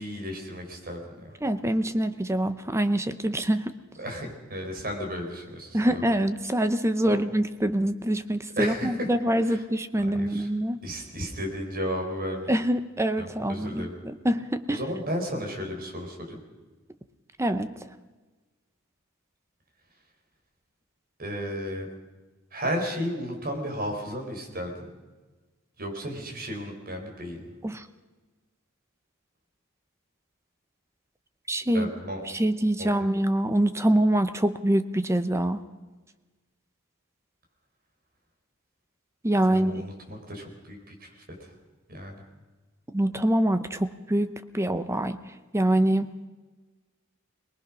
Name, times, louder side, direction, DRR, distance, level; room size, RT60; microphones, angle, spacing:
voice 1, 0.0-1.4 4.0-6.0 7.0-7.2 8.6-9.1 9.4-9.6 10.1-10.5 10.8-12.5 13.2-13.9 14.7-16.4 21.2-21.9 22.5-24.9 25.8-27.5 31.7-32.2 32.8-32.9 39.4-41.5 41.9-42.2, equal, 45° right, 2 dB, 4.6 m, -34 dB
voice 2, 1.4-3.7 5.7-10.8 12.5-14.8 17.4-17.7 27.6-27.9 31.5-31.9 32.3-35.6 39.2-39.8 42.9-45.2 45.5-46.1, right 1 dB, 15° right, 10 dB, 0.7 m, -25 dB
22.5 x 20.0 x 6.2 m, 1.2 s
head